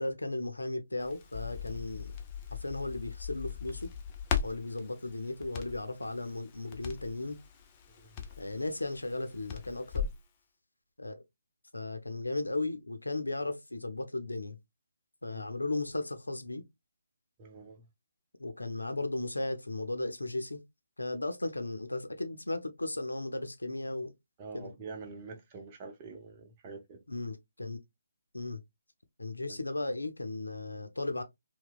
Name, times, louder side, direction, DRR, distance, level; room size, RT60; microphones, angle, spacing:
voice 1, 0.0-2.2 2.5-3.9 4.4-7.4 8.4-10.1 11.0-11.2 11.7-14.6 15.2-16.6 18.4-20.6 21.0-24.1 24.5-24.7 27.1-27.8 28.3-28.6 29.2-31.2, left 2 dB, 90° left, 0.5 m, -36 dB
Crackle, 1.0-10.2, left 7 dB, 25° left, 0.5 m, -39 dB
voice 2, 17.4-17.8 24.4-27.0 29.5-29.6, right 4 dB, 30° right, 0.7 m, -46 dB
2.8 x 2.1 x 2.3 m
figure-of-eight pair, 145°, 0 cm